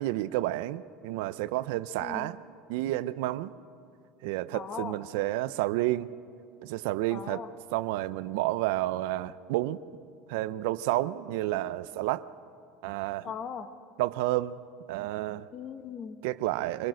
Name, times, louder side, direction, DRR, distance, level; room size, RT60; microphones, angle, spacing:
voice 1, 0.0-2.4 2.7-3.5 4.2-6.1 6.6-7.4 7.7-9.8 10.3-12.3 12.8-13.3 14.0-14.6 14.9-15.5 16.2-16.9, right 16 dB, 75° right, 15 dB, 0.6 m, -30 dB
voice 2, 2.0-2.3 4.5-5.0 7.1-7.5 13.2-13.7 15.5-16.2, left 6 dB, 30° left, 10 dB, 1.2 m, -39 dB
25.5 x 18.5 x 6.4 m, 2.4 s
cardioid pair, 145°, 0 cm